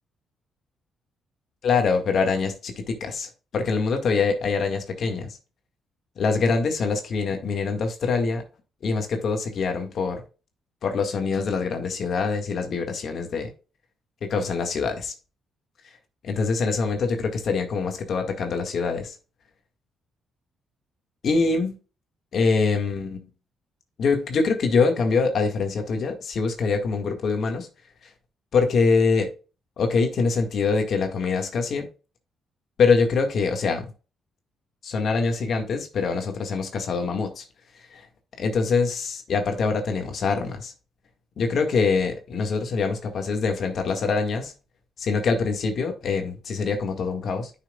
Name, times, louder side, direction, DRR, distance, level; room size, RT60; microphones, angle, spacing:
voice 1, 1.6-5.4 6.2-8.4 8.8-10.2 10.8-13.5 14.2-15.1 16.2-19.2 21.2-21.8 22.3-23.2 24.0-27.7 28.5-29.3 29.8-31.9 32.8-33.9 34.8-37.4 37.9-38.0 38.4-40.7 41.4-44.5 45.0-47.5, left 4 dB, 60° left, 1.9 m, -24 dB
9.7 x 6.0 x 2.4 m
cardioid pair, 90°, 0 cm